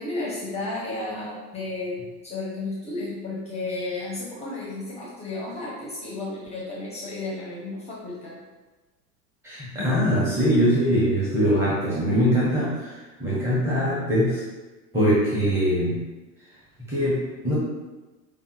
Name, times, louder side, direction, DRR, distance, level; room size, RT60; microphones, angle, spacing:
voice 1, 0.0-8.4, left 2 dB, 15° left, -4 dB, 0.7 m, -33 dB
voice 2, 9.4-14.4 14.9-16.0 16.9-17.5, equal, 5° right, -9 dB, 0.9 m, -22 dB
5.2 x 2.2 x 3.1 m, 1.2 s
figure-of-eight pair, 85°, 47 cm